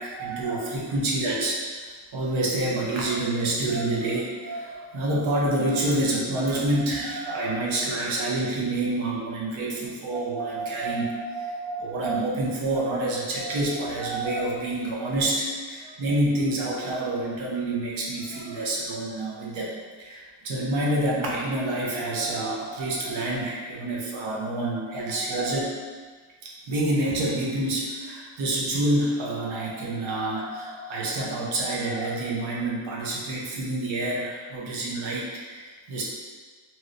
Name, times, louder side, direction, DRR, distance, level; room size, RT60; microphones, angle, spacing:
voice 1, 0.0-25.8 26.4-36.0, right 1 dB, 75° right, -4 dB, 0.8 m, -28 dB
3.0 x 2.8 x 2.5 m, 1.5 s
wide cardioid pair, 175°, 48 cm